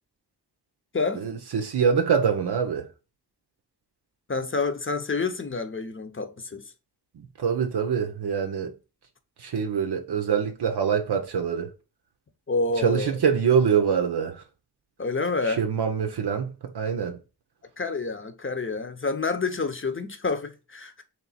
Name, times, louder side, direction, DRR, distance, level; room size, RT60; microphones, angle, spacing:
voice 1, 1.2-2.9 7.1-8.7 9.4-11.7 12.8-14.4 15.4-17.2, right 7 dB, 80° right, 0.6 m, -25 dB
voice 2, 4.3-6.6 12.5-13.2 15.0-15.6 17.8-21.0, left 3 dB, 30° left, 0.7 m, -28 dB
3.2 x 3.1 x 4.0 m
cardioid pair, 45°, 40 cm